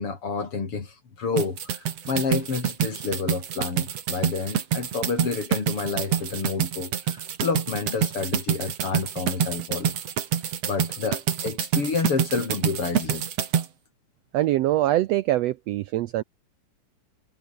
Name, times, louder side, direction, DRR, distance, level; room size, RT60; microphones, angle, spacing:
voice 1, 0.0-9.9 10.7-13.3, left 4 dB, 45° left, 4.4 m, -29 dB
sound 1, 1.4-13.7, right 8 dB, 55° right, 2.9 m, -27 dB
voice 2, 14.3-16.2, right 15 dB, 80° right, 1.5 m, -23 dB
omnidirectional pair, 3.5 m